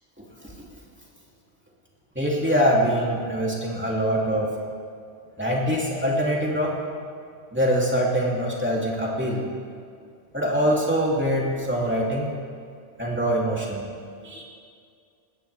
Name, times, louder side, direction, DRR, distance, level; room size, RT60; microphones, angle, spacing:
voice 1, 2.1-4.5 5.4-6.7 7.5-9.4 10.3-12.3 13.0-13.8 14.2-14.4, equal, 10° right, -4 dB, 2.9 m, -23 dB
19.5 x 17.0 x 3.5 m, 2.3 s
omnidirectional pair, 1.2 m